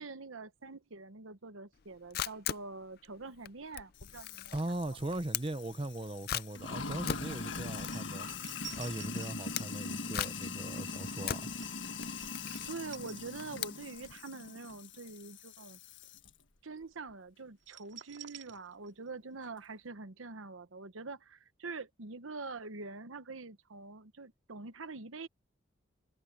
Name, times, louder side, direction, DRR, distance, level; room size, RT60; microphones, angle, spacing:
voice 1, 0.0-4.5 12.7-15.8 16.6-25.3, right 3 dB, 90° right, 1.1 m, -45 dB
Camera, 1.8-14.2, left 10 dB, 50° left, 0.4 m, -41 dB
Sink (filling or washing), 4.0-16.3, left 4 dB, 70° left, 1.4 m, -42 dB
voice 2, 4.5-8.3 8.8-11.5, right 1 dB, 25° right, 0.7 m, -39 dB
sound 1, 7.8-13.9 14.2-14.5 17.6-19.2 19.4-19.5, right 11 dB, 70° right, 2.3 m, -52 dB
head